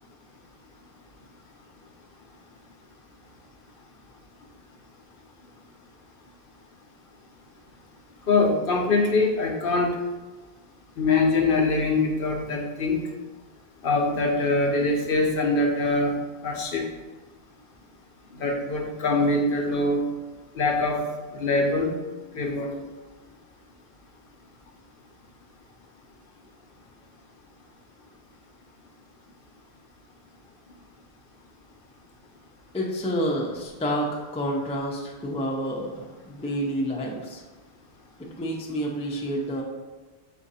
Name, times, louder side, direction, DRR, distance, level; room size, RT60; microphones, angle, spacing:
voice 1, 8.3-10.0 11.0-13.0 13.8-16.2 16.4-16.9 18.3-20.1 20.6-21.9 22.3-22.7, left 3 dB, 60° left, 1 dB, 0.8 m, -23 dB
voice 2, 32.7-37.4 38.4-39.6, equal, 10° left, -1 dB, 0.3 m, -29 dB
4.7 x 2.5 x 4.0 m, 1.2 s
omnidirectional pair, 1.0 m